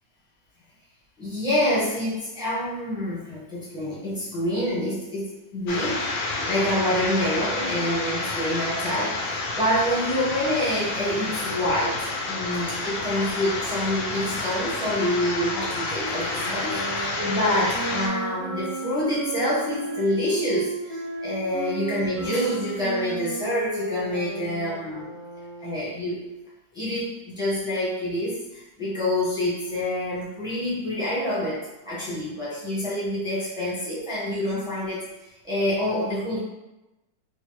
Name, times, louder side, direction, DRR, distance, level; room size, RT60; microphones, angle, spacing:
voice 1, 1.2-25.1 25.6-26.3 26.7-35.0 35.4-36.4, left 1 dB, 5° right, -9 dB, 0.6 m, -27 dB
sound 1, 5.7-18.1, left 3 dB, 70° left, 0.9 m, -29 dB
sound 2, 15.9-26.0, right 2 dB, 55° right, 1.1 m, -33 dB
3.7 x 2.0 x 3.0 m, 1.0 s
omnidirectional pair, 1.9 m